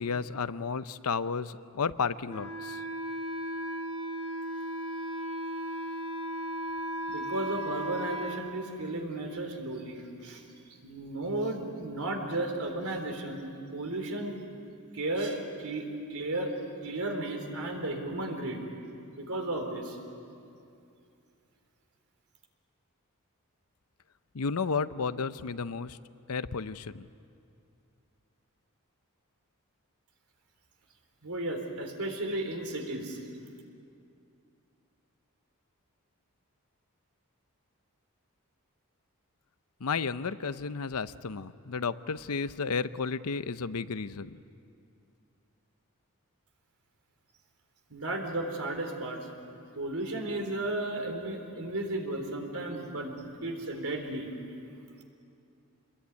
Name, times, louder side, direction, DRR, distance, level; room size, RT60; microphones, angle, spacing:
voice 1, 0.0-2.8 24.3-26.0 26.3-27.1 39.8-44.4, left 5 dB, 80° left, 14 dB, 0.7 m, -32 dB
Wind instrument woodwind instrument, 2.3-8.4, right 1 dB, 25° right, 2.5 m, -36 dB
voice 2, 7.1-10.4 10.8-14.4 14.9-16.5 16.8-18.6 19.2-20.0 31.2-33.2 47.9-49.2 49.8-54.3, right 2 dB, 70° right, 4 dB, 3.9 m, -34 dB
27.5 x 21.5 x 9.5 m, 2.5 s
head